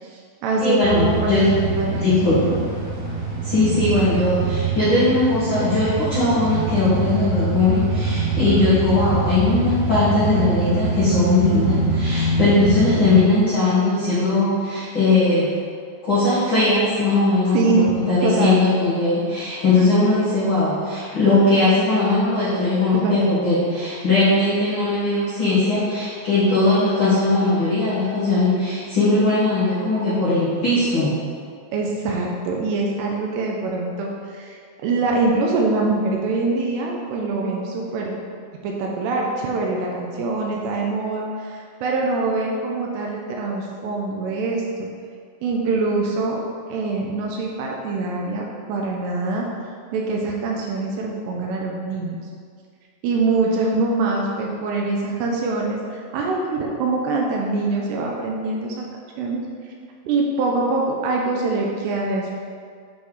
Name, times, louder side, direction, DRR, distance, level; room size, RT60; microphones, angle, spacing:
voice 1, 0.0-2.0 2.4-2.6 17.5-17.9 18.2-18.6 22.9-23.2 31.7-38.1 38.6-44.9 45.4-46.4 46.7-49.5 49.9-52.2 53.0-58.9 59.2-59.4 60.1-62.3, right 3 dB, 80° right, -1 dB, 2.7 m, -24 dB
voice 2, 0.6-1.4 2.0-2.4 3.4-15.5 16.0-31.1, left 2 dB, 75° left, -13 dB, 1.1 m, -19 dB
sound 1, 0.8-13.2, right 2 dB, 55° right, 2.4 m, -24 dB
8.3 x 3.8 x 4.7 m, 2.1 s
omnidirectional pair, 5.0 m